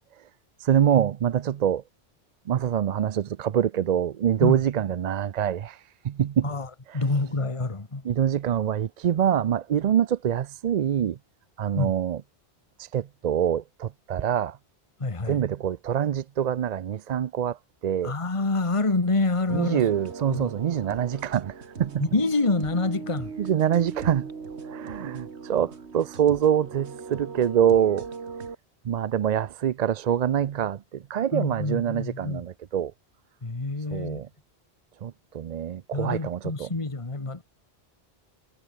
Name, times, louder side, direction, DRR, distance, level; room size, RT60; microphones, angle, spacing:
voice 1, 0.6-1.8 2.5-5.8 6.0-6.5 8.0-11.2 11.6-12.2 12.8-14.6 15.3-17.6 17.8-18.1 19.5-21.5 21.8-22.0 23.4-24.3 24.7-28.1 28.9-32.9 33.9-34.3 35.0-36.7, right 9 dB, 55° right, 0.5 m, -25 dB
voice 2, 6.4-8.0 11.8-11.9 15.0-15.4 18.0-19.8 20.3-20.5 22.0-23.3 31.3-32.4 33.4-34.2 35.9-37.4, left 3 dB, 30° left, 1.7 m, -27 dB
sound 1, 19.5-28.5, right 5 dB, 90° right, 2.1 m, -39 dB
omnidirectional pair, 1.1 m